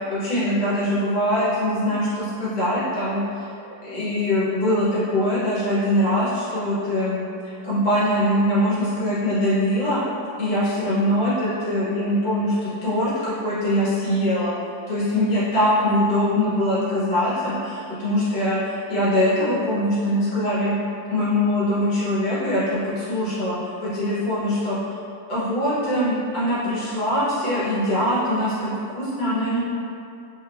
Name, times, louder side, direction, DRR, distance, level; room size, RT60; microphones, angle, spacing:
voice 1, 0.1-3.2 3.8-10.0 10.4-14.5 14.9-20.7 21.1-22.6 23.0-24.8 25.3-29.6, left 1 dB, 60° left, -12 dB, 1.8 m, -22 dB
3.7 x 2.7 x 3.8 m, 2.6 s
omnidirectional pair, 2.2 m